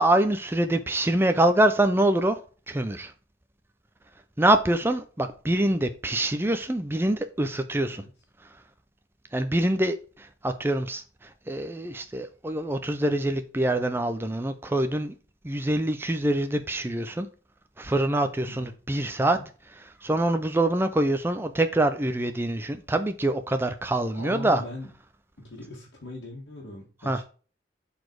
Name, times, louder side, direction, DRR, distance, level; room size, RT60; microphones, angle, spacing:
voice 1, 0.0-2.4 2.7-3.1 4.4-8.0 9.3-15.1 15.4-17.3 17.8-19.4 19.7-24.6 27.1-27.2, right 1 dB, 15° right, 0.5 m, -25 dB
voice 2, 24.1-24.9 25.4-27.2, left 2 dB, 85° left, 1.9 m, -40 dB
6.8 x 4.2 x 4.6 m
head